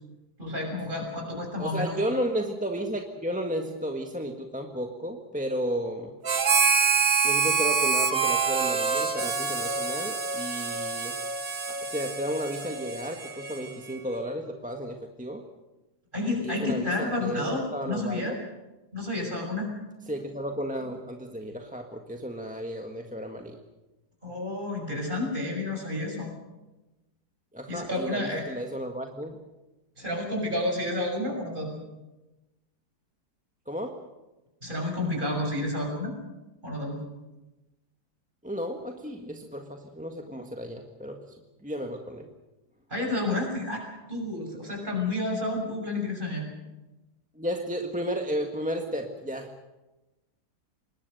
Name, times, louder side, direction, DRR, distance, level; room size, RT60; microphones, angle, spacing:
voice 1, 0.4-2.0 16.1-18.4 18.9-19.7 24.2-26.3 27.7-28.4 30.0-31.8 34.6-36.2 36.6-37.0 42.9-43.8 44.1-46.5, left 2 dB, 30° right, 2 dB, 6.9 m, -30 dB
voice 2, 1.6-6.1 7.2-11.2 11.7-15.4 16.4-18.4 20.1-23.6 27.5-29.4 33.7-34.0 38.4-41.3 41.6-42.3 47.3-49.6, equal, 5° right, 3 dB, 1.4 m, -33 dB
Harmonica, 6.2-14.0, right 5 dB, 55° right, 2.2 m, -26 dB
26.0 x 20.5 x 6.6 m, 1.1 s
omnidirectional pair, 1.7 m